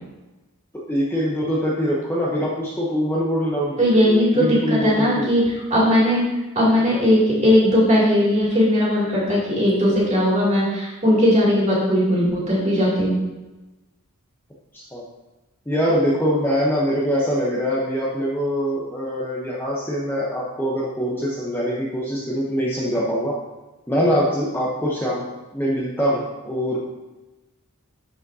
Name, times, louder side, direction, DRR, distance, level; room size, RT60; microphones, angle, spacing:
voice 1, 0.9-5.3 14.7-15.0 15.7-23.4 23.9-25.3 25.5-26.8, equal, 10° left, -5 dB, 0.8 m, -23 dB
voice 2, 3.8-5.4 5.7-6.2 6.5-13.2, equal, 30° right, -6 dB, 2.5 m, -18 dB
11.5 x 5.0 x 2.7 m, 1.1 s
head